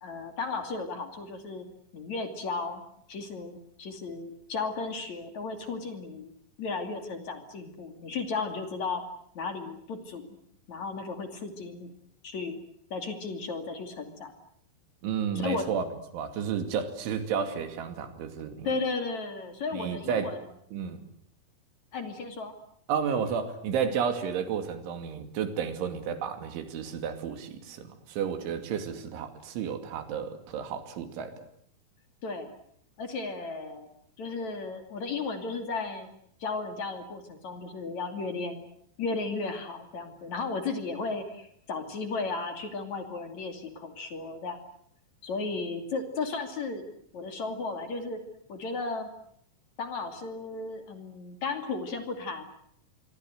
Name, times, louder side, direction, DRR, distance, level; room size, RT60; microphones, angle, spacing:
voice 1, 0.0-1.7 1.9-2.8 3.1-6.3 6.6-9.0 9.4-10.3 10.7-11.9 12.2-12.6 12.9-14.3 15.4-15.7 18.7-20.4 21.9-22.5 32.2-32.6 33.0-33.9 34.2-36.1 36.4-38.6 39.0-44.6 45.2-46.9 47.1-48.2 48.5-49.1 49.8-52.4, left 4 dB, 45° left, 6 dB, 3.5 m, -34 dB
voice 2, 15.0-15.8 16.1-18.7 19.7-20.3 20.7-21.0 22.9-31.5, right 7 dB, 90° right, 8 dB, 4.9 m, -32 dB
26.5 x 23.0 x 8.0 m, 0.70 s
omnidirectional pair, 5.3 m